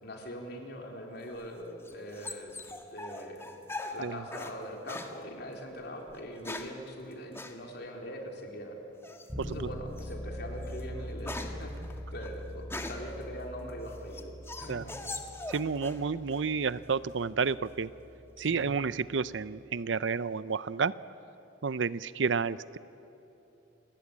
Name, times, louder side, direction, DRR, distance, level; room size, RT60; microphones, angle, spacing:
voice 1, 0.0-2.5 2.9-3.5 3.9-8.8 9.4-15.2 18.4-18.7, equal, 60° left, 1 dB, 3.9 m, -42 dB
sound 1, 1.3-4.6 4.9-5.2 6.1-6.8 7.3-7.6 9.0-9.4 10.0-10.1 10.5-13.2 13.7-16.0 16.3-16.9, left 2 dB, 15° left, 1.6 m, -41 dB
Bass guitar, 9.3-19.0, equal, 10° right, 6.1 m, -43 dB
voice 2, 9.4-9.7 14.7-14.8 15.5-17.9 18.4-20.9 21.6-22.8, right 5 dB, 70° right, 17 dB, 0.6 m, -30 dB
28.0 x 20.5 x 8.7 m, 2.9 s
head